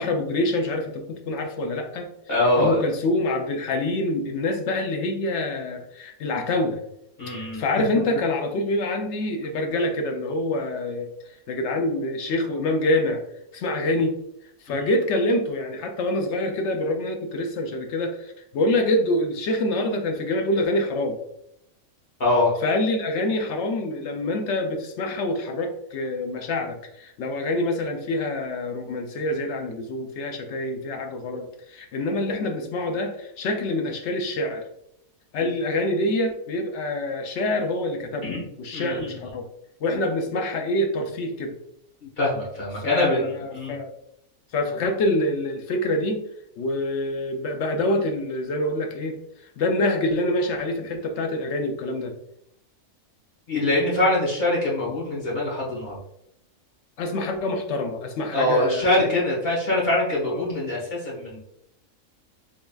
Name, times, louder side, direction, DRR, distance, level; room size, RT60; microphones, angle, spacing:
voice 1, 0.0-2.1 2.6-6.8 7.5-11.1 11.5-13.2 13.5-14.2 14.6-21.2 22.6-34.6 35.3-38.3 38.6-39.5 39.8-41.6 42.8-43.9 44.5-46.3 46.6-49.2 49.6-52.1 57.0-59.2 60.3-60.5, left 1 dB, 65° left, 5 dB, 0.8 m, -26 dB
voice 2, 2.3-2.8 7.2-7.6 14.7-14.9 22.2-22.5 38.2-38.4 38.7-39.3 42.2-43.7 53.5-56.0 58.3-61.4, left 1 dB, 45° left, -5 dB, 1.5 m, -23 dB
3.9 x 3.5 x 2.3 m, 0.78 s
omnidirectional pair, 1.4 m